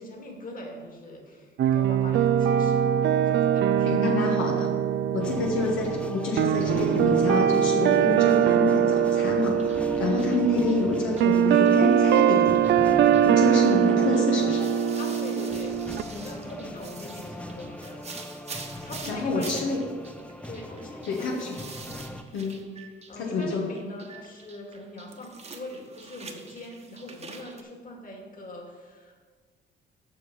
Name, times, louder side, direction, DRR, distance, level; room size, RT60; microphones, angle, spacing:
voice 1, 0.0-2.9 3.2-4.2 14.9-15.8 16.1-18.0 18.5-19.8 20.5-21.7 23.1-29.1, left 1 dB, 45° left, 1 dB, 2.3 m, -42 dB
sound 1, 1.6-16.0, right 9 dB, 60° right, 0.4 m, -22 dB
voice 2, 3.8-4.7 5.1-12.6 13.2-14.7 18.8-19.8 21.0-21.5 22.3-22.6 23.2-23.7, left 3 dB, 80° left, -1 dB, 1.3 m, -28 dB
sound 2, 5.2-22.2, left 1 dB, 5° left, 0.6 m, -39 dB
sound 3, 9.6-27.6, right 4 dB, 35° right, 1.2 m, -46 dB
7.9 x 5.9 x 7.1 m, 1.6 s
cardioid pair, 90°, 20 cm